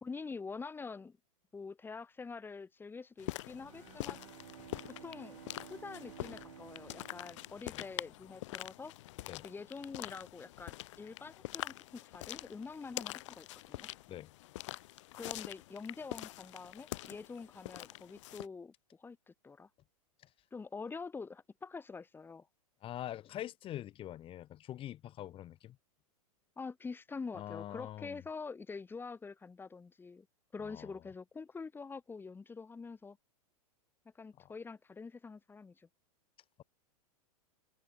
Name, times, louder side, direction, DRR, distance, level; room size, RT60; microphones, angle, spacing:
voice 1, 0.0-1.2 1.5-4.2 4.9-5.4 5.7-8.9 9.4-13.9 15.1-18.7 19.0-19.7 20.5-22.5 26.6-30.3 30.5-33.2 34.2-35.9, left 4 dB, 10° left, 1.6 m, -46 dB
sound 1, 3.2-18.5, left 17 dB, 50° left, 1.0 m, -45 dB
Bowed string instrument, 3.5-8.4, right 13 dB, 55° right, 1.9 m, -54 dB
voice 2, 22.8-25.8 27.3-28.2 30.6-30.9, left 12 dB, 30° left, 1.9 m, -44 dB
figure-of-eight pair, 100°, 19 cm